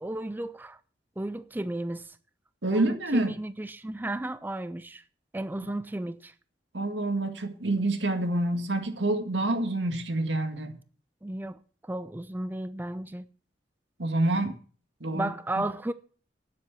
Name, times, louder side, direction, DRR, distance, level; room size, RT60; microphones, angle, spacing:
voice 1, 0.0-0.8 1.2-2.2 2.7-5.0 5.3-6.3 11.2-13.3 15.1-15.9, right 1 dB, 10° right, 0.4 m, -34 dB
voice 2, 2.6-3.4 5.6-5.7 6.7-10.8 14.0-14.6 15.0-15.3 15.6-15.7, right 2 dB, 90° right, 1.9 m, -27 dB
9.5 x 7.7 x 7.1 m
head